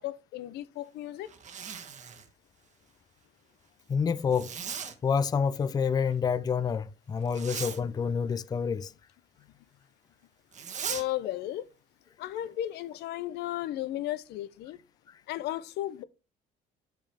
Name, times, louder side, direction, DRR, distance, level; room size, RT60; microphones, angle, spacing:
voice 1, 0.0-1.3 10.9-11.6 12.2-14.8 15.3-16.0, left 13 dB, 80° left, 0.6 m, -34 dB
Zipper (clothing), 1.2-2.3 4.3-4.9 7.3-7.8 10.5-11.0, right 7 dB, 45° right, 1.2 m, -38 dB
voice 2, 3.9-4.5 5.0-8.9, left 6 dB, 25° left, 0.4 m, -28 dB
7.8 x 5.2 x 3.4 m
cardioid pair, 110°, 17 cm